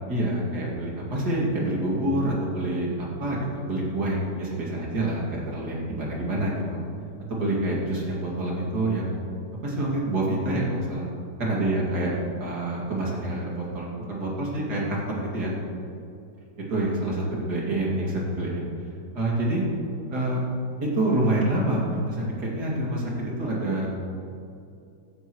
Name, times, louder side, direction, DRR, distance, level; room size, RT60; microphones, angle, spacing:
voice 1, 0.1-6.8 7.3-9.1 9.6-11.1 11.4-12.1 12.4-15.5 16.7-18.7 19.1-19.6 20.1-20.4 20.8-23.9, right 1 dB, 70° right, -4 dB, 3.1 m, -27 dB
15.5 x 12.0 x 3.2 m, 2.5 s
omnidirectional pair, 1.8 m